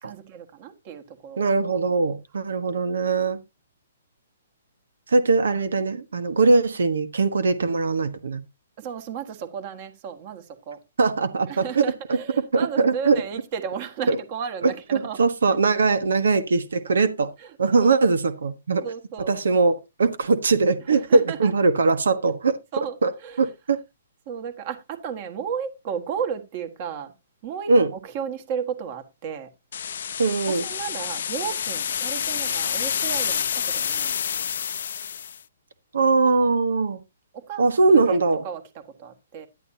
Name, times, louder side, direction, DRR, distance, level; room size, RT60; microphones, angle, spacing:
voice 1, 0.0-1.5 8.8-10.8 11.4-15.2 16.9-17.0 17.4-18.0 18.8-19.3 20.9-21.5 22.7-23.5 24.2-27.1 27.4-29.5 30.5-34.2 37.3-39.5, right 7 dB, 35° right, 1.6 m, -34 dB
voice 2, 1.4-3.4 5.1-8.4 11.0-11.8 12.5-13.2 14.1-14.2 15.2-17.3 17.6-18.8 19.3-22.6 23.0-23.1 23.4-23.8 27.7-27.9 30.2-30.6 35.9-37.0 37.6-38.4, right 3 dB, 85° right, 1.3 m, -21 dB
sound 1, 29.7-35.4, left 8 dB, 65° left, 0.6 m, -28 dB
11.0 x 10.5 x 2.8 m
hypercardioid pair, 160°, 0 cm